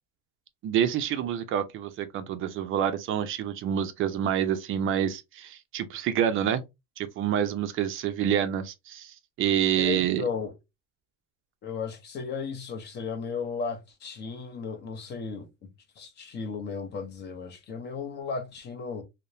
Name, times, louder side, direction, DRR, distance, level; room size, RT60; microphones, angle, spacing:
voice 1, 0.6-6.6 7.0-10.2, right 9 dB, 35° right, 0.4 m, -27 dB
voice 2, 9.8-10.5 11.6-15.7 16.0-19.0, left 5 dB, 30° left, 0.6 m, -35 dB
2.8 x 2.1 x 2.5 m
supercardioid pair, 130°, 36 cm